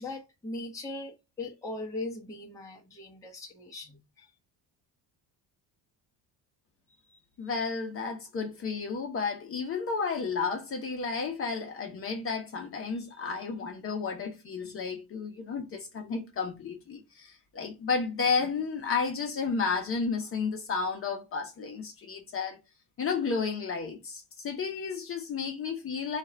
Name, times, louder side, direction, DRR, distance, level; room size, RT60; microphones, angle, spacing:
voice 1, 0.0-4.3, left 2 dB, 10° left, 0.9 m, -39 dB
voice 2, 7.1-22.6 23.0-26.2, left 5 dB, 35° left, 0.9 m, -32 dB
4.5 x 2.5 x 4.3 m
cardioid pair, 165°, 40 cm